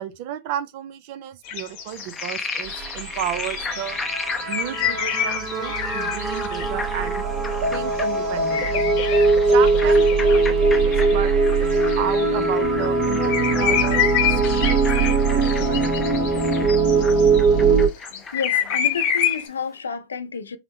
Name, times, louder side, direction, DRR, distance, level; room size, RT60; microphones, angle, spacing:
voice 1, 0.0-4.0 4.5-7.3 7.7-8.9 9.5-11.4 12.0-15.9, right 11 dB, 50° right, 0.4 m, -32 dB
sound 1, 1.4-6.7 8.5-11.2 11.6-12.4 12.8-17.5 17.9-19.5, left 9 dB, 50° left, 0.8 m, -27 dB
Frog, 1.9-19.4, left 4 dB, 15° left, 0.5 m, -36 dB
sound 2, 2.6-17.9, right 3 dB, 30° right, 0.9 m, -21 dB
voice 2, 18.0-20.6, left 6 dB, 85° left, 0.4 m, -31 dB
3.6 x 2.0 x 2.9 m
hypercardioid pair, 105°, 0 cm